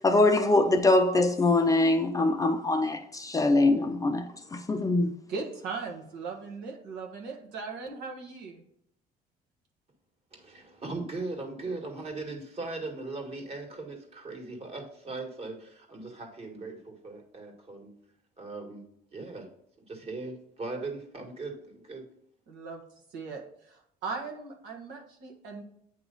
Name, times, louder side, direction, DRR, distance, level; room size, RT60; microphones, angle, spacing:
voice 1, 0.0-5.1, left 2 dB, 20° left, 0.5 m, -23 dB
voice 2, 5.3-8.6 22.5-22.8 23.1-23.4 23.7-25.6, right 4 dB, 85° right, 1.4 m, -38 dB
voice 3, 10.3-18.0 18.4-18.8 19.1-19.5 19.9-22.1, right 3 dB, 35° right, 1.7 m, -39 dB
8.6 x 3.0 x 3.9 m
cardioid pair, 110°, 17 cm